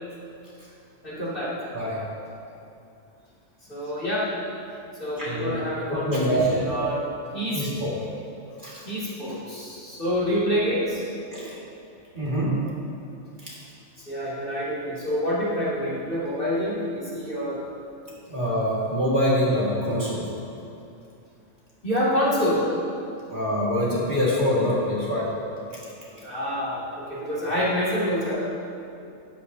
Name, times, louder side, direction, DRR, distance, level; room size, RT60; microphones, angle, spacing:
voice 1, 1.0-1.6 3.7-4.3 5.0-7.0 7.3-7.7 8.9-11.0 14.0-17.6 21.8-22.7 26.2-28.4, equal, 45° left, -9 dB, 2.5 m, -27 dB
voice 2, 5.2-5.6 5.9-6.5 7.5-7.9 8.6-8.7 11.3-11.5 12.2-12.6 13.4-13.5 18.3-20.3 23.3-25.3, equal, 40° right, -7 dB, 2.0 m, -24 dB
12.5 x 9.8 x 2.7 m, 2.6 s
omnidirectional pair, 1.3 m